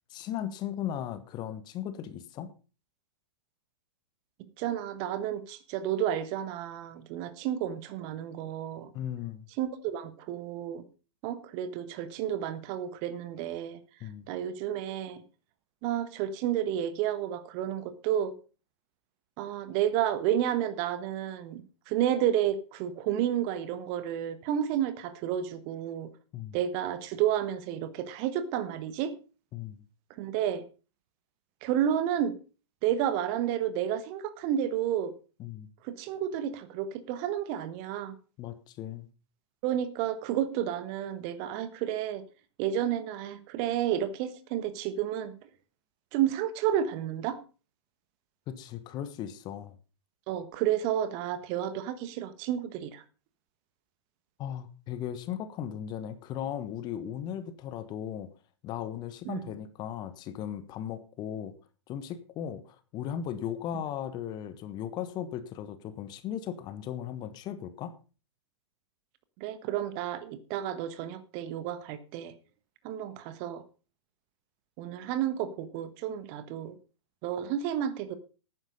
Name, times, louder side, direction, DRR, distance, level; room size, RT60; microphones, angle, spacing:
voice 1, 0.1-2.5 8.9-9.5 14.0-14.2 26.3-26.6 29.5-29.8 35.4-35.7 38.4-39.1 48.5-49.7 54.4-58.3 58.6-61.5 61.9-67.9, left 10 dB, 30° left, 12 dB, 1.3 m, -37 dB
voice 2, 4.6-8.9 9.6-10.8 11.2-15.2 15.8-18.3 19.4-26.1 26.5-29.1 30.1-30.6 31.6-32.4 32.8-35.1 35.8-38.1 39.6-42.2 42.6-45.5 46.1-47.4 50.3-53.0 59.2-59.5 69.4-72.3 72.8-73.6 74.8-76.7 77.2-78.1, right 10 dB, 35° right, 13 dB, 1.4 m, -31 dB
11.5 x 9.6 x 5.4 m, 0.34 s
figure-of-eight pair, 110°, 15 cm